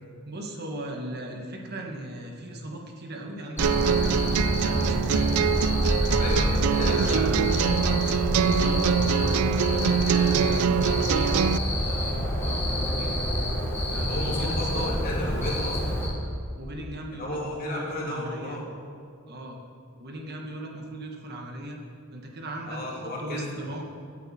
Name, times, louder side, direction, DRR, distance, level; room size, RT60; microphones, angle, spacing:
voice 1, 0.2-5.5 6.0-6.3 6.8-8.1 8.4-11.4 11.7-13.2 13.9-14.9 15.2-15.6 16.6-18.6 19.3-19.6 20.0-21.8 22.1-23.8, right 1 dB, 50° right, 1 dB, 1.4 m, -38 dB
Cricket, 3.6-16.1, equal, 10° left, 2.9 m, -27 dB
sound 1, 3.6-11.6, right 8 dB, 85° right, 0.3 m, -24 dB
voice 2, 6.2-7.4 14.1-16.0 17.1-18.7 22.7-23.4, left 1 dB, 45° left, -4 dB, 2.9 m, -33 dB
16.5 x 8.7 x 4.3 m, 2.3 s
head